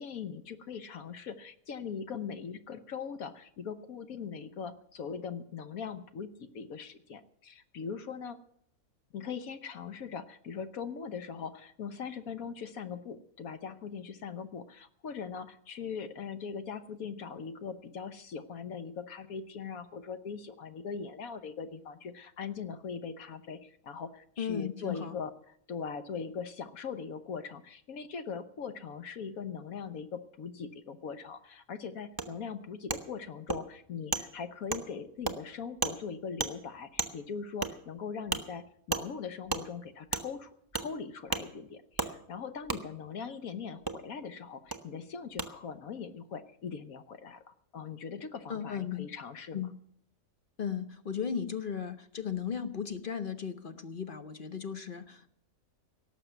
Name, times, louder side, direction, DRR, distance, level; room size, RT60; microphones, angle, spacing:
voice 1, 0.0-8.4 9.1-25.3 25.7-49.7, left 6 dB, 80° left, 11 dB, 1.4 m, -41 dB
voice 2, 24.4-25.2 48.5-49.1 49.5-49.7 50.6-55.3, left 7 dB, 45° left, 9 dB, 0.9 m, -36 dB
Wood, 32.2-32.3 32.9-33.0 33.5-33.6 34.1-34.2 34.7-34.8 35.2-35.4 35.8-36.0 36.4-36.5 37.0-37.1 37.6-37.7 38.3-38.4 38.9-39.0 39.5-39.6 40.1-40.2 40.7-40.9 41.3-41.4 42.0-42.1 42.7-42.8 43.9-44.0 44.7-44.8 45.4-45.5, right 3 dB, 20° right, 0.9 m, -32 dB
18.0 x 6.7 x 9.1 m, 0.68 s
omnidirectional pair, 1.5 m